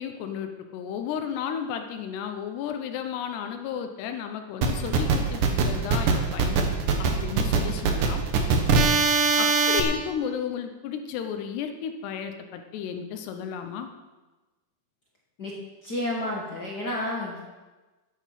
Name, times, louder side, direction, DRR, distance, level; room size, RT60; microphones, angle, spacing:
voice 1, 0.0-6.7 7.0-8.2 9.4-13.9, left 8 dB, 90° left, 6 dB, 3.1 m, -33 dB
sound 1, 4.6-9.8, right 4 dB, 65° right, 2.6 m, -22 dB
voice 2, 15.4-17.4, left 1 dB, 60° left, -3 dB, 1.0 m, -31 dB
13.0 x 9.6 x 5.8 m, 1.2 s
omnidirectional pair, 4.7 m